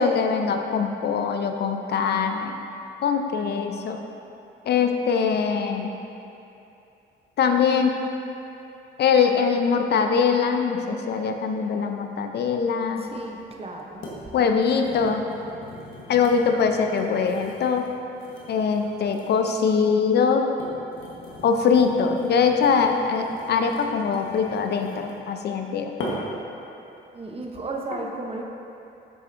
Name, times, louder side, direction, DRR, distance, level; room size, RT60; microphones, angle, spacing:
voice 1, 0.0-2.6 3.0-4.0 4.7-5.9 7.4-7.9 9.0-13.1 14.3-15.2 16.1-17.9 18.5-20.5 21.4-25.9, left 6 dB, 55° left, 5 dB, 0.5 m, -22 dB
voice 2, 13.0-14.0 27.1-28.4, right 3 dB, 30° right, 1 dB, 0.7 m, -34 dB
sound 1, 14.0-14.2 14.6-19.8 20.4-25.3 26.0-26.4 27.0-27.2, left 1 dB, 80° left, 1.3 m, -40 dB
7.4 x 6.3 x 2.6 m, 2.8 s
cardioid pair, 90°, 20 cm